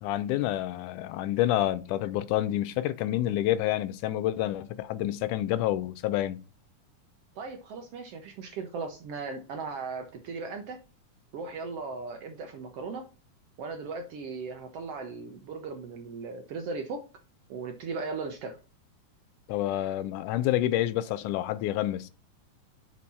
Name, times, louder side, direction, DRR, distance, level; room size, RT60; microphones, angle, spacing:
voice 1, 0.0-6.4 19.5-22.1, left 13 dB, 85° left, 2.1 m, -28 dB
voice 2, 7.3-10.8 11.3-13.1 13.6-17.0 17.5-18.6, right 4 dB, 70° right, 1.5 m, -37 dB
6.8 x 4.6 x 4.1 m
omnidirectional pair, 3.6 m